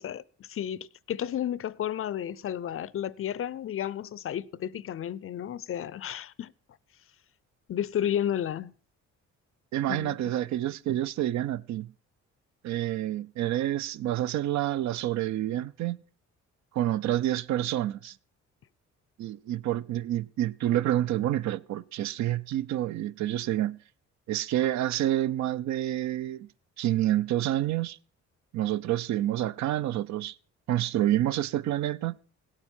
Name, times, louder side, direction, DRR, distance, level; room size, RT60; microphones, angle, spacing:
voice 1, 0.0-6.5 7.7-8.7 9.9-10.2, left 10 dB, 45° left, 0.5 m, -32 dB
voice 2, 9.7-11.9 12.6-16.0 16.7-18.2 19.2-23.8 24.3-26.5 26.8-28.0 28.5-30.3 30.7-32.2, right 13 dB, 65° right, 0.5 m, -28 dB
17.0 x 8.2 x 4.4 m
cardioid pair, 90°, 30 cm